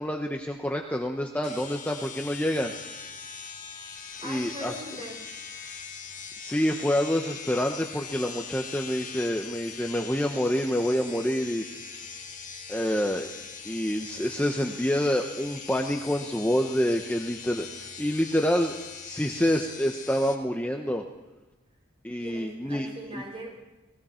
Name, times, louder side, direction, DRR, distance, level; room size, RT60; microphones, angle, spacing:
voice 1, 0.0-2.7 4.2-4.7 6.4-11.6 12.7-13.3 13.7-17.7 18.0-18.8 19.0-21.0 22.0-23.2, equal, 10° left, 2 dB, 0.9 m, -27 dB
sound 1, 1.4-20.3, left 6 dB, 40° left, 1.7 m, -41 dB
voice 2, 4.2-5.3 5.5-5.8 22.2-23.5, equal, 25° right, -2 dB, 7.0 m, -41 dB
29.5 x 20.0 x 4.4 m, 1.1 s
head